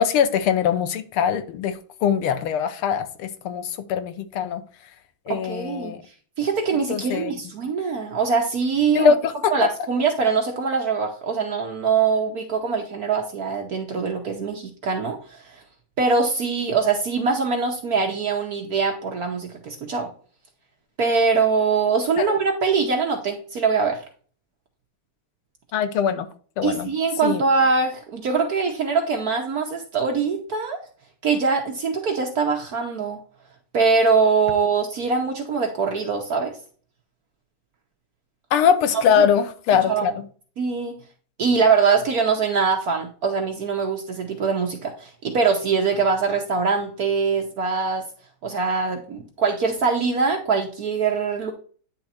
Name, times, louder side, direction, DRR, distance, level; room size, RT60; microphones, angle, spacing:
voice 1, 0.0-4.6 5.3-6.0 6.9-7.3 8.9-9.7 22.2-22.4 25.7-26.3 26.6-26.9 27.2-27.4 38.5-40.1, left 8 dB, 80° left, 1.7 m, -22 dB
voice 2, 5.3-5.9 6.4-9.1 9.5-15.6 16.0-20.1 21.0-24.0 26.6-30.8 31.2-33.2 33.7-36.6 39.2-39.3 39.9-40.1 40.6-41.0 41.4-48.0 48.4-51.5, right 5 dB, 60° right, 1.1 m, -23 dB
10.0 x 3.5 x 4.2 m
omnidirectional pair, 2.4 m